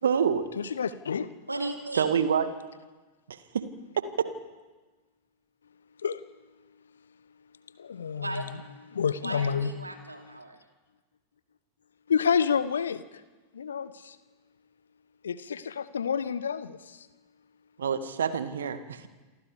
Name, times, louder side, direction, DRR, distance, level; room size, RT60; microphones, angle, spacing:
voice 1, 0.0-0.5 2.0-2.5 3.3-3.6 17.8-19.1, right 7 dB, 65° right, 10 dB, 2.0 m, -27 dB
voice 2, 0.6-1.3 6.0-6.2 7.8-8.4 8.9-9.7 12.1-13.0 13.5-14.1 15.2-17.0, left 7 dB, 70° left, 15 dB, 1.2 m, -29 dB
voice 3, 1.5-2.2 8.2-8.5 9.2-10.6, right 2 dB, 80° right, 3 dB, 3.5 m, -36 dB
28.5 x 25.0 x 5.1 m, 1.3 s
figure-of-eight pair, 90°, 0 cm